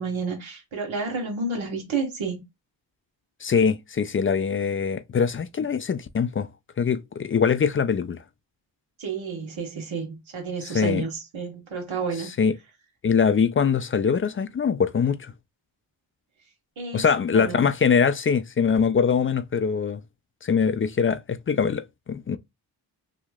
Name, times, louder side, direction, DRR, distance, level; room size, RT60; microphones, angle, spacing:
voice 1, 0.0-2.4 9.0-12.3 16.8-17.7, right 4 dB, 80° right, 1.3 m, -31 dB
voice 2, 3.4-6.5 6.8-8.2 10.6-11.0 12.2-12.6 13.0-15.3 16.9-20.0 20.4-22.4, left 6 dB, 30° left, 0.3 m, -23 dB
3.0 x 2.8 x 2.3 m
cardioid pair, 45°, 47 cm